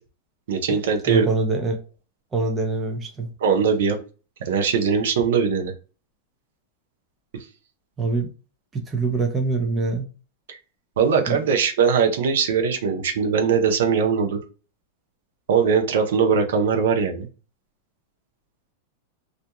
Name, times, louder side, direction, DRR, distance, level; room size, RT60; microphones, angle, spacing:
voice 1, 0.5-1.3 3.4-4.0 4.4-5.7 10.5-10.6 11.0-14.4 15.5-17.3, right 6 dB, 80° right, 0.7 m, -21 dB
voice 2, 1.1-1.8 2.3-3.3 8.0-8.3 8.7-10.1 11.3-11.4, right 3 dB, 15° right, 0.6 m, -24 dB
2.5 x 2.3 x 2.9 m
supercardioid pair, 160°, 0 cm